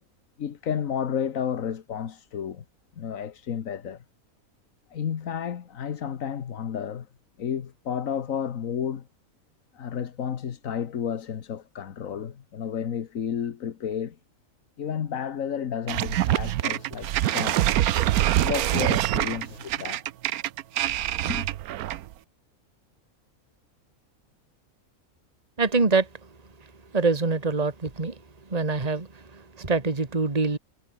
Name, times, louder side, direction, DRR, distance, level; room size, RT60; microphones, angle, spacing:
voice 1, 0.4-2.6 2.9-4.0 4.9-7.1 7.4-9.1 9.7-14.2 14.8-17.8 18.4-20.1 21.3-21.5, left 8 dB, 65° left, 1.5 m, -32 dB
sound 1, 15.9-22.1, right 13 dB, 90° right, 1.2 m, -25 dB
voice 2, 25.6-26.1 26.9-28.2 28.5-30.6, right 4 dB, 25° right, 2.0 m, -24 dB
omnidirectional pair, 1.5 m